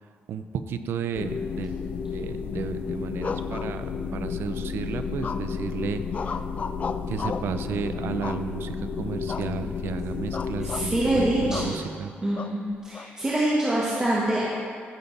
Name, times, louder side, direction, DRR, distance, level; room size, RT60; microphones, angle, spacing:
voice 1, 0.3-1.7 2.1-6.0 7.1-12.1, right 7 dB, 75° right, 9 dB, 0.6 m, -33 dB
sound 1, 1.1-11.7, left 5 dB, 60° left, 0.7 m, -32 dB
sound 2, 3.2-4.2 5.2-5.7 6.1-7.6 8.2-8.8 9.3-9.5 9.8-10.0 10.3-10.9 11.5-11.8 12.4-13.1, left 5 dB, 35° left, 0.3 m, -35 dB
voice 2, 10.6-11.8 12.2-14.4, right 1 dB, 15° right, -7 dB, 1.5 m, -25 dB
14.0 x 7.1 x 4.1 m, 2.2 s
cardioid pair, 135°, 4 cm